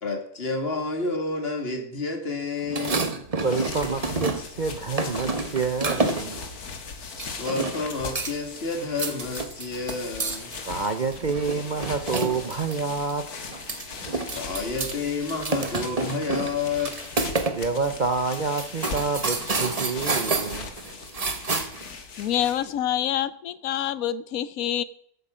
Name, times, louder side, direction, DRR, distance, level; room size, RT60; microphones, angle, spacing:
voice 1, 0.0-3.2 7.2-10.5 14.3-16.9, left 3 dB, 40° left, 4 dB, 2.2 m, -30 dB
sound 1, 2.6-4.6 5.0-6.4 7.2-7.9 8.1-8.6 8.9-12.8 13.1-13.2 13.5-14.9 15.2-17.6 17.8-17.9 18.3-21.9, right 3 dB, 25° right, 1.1 m, -29 dB
sound 2, 3.2-22.8, left 4 dB, 90° left, 2.0 m, -39 dB
voice 2, 3.4-6.4 10.7-13.2 17.5-20.7, right 4 dB, 45° right, 8 dB, 0.7 m, -28 dB
voice 3, 22.2-24.8, left 11 dB, 75° left, 16 dB, 1.1 m, -26 dB
13.5 x 8.6 x 4.9 m, 0.72 s
omnidirectional pair, 1.6 m